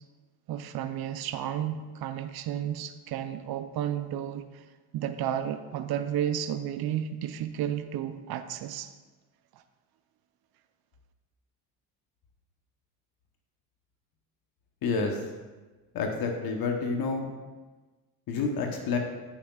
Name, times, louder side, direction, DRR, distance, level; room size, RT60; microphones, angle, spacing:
voice 1, 0.5-4.6 4.9-8.9 9.5-9.6, right 10 dB, 60° right, 10 dB, 0.5 m, -32 dB
voice 2, 14.8-15.2 15.9-17.3 18.3-19.0, left 4 dB, 60° left, 3 dB, 1.0 m, -29 dB
9.8 x 5.8 x 2.3 m, 1.3 s
supercardioid pair, 80°, 41 cm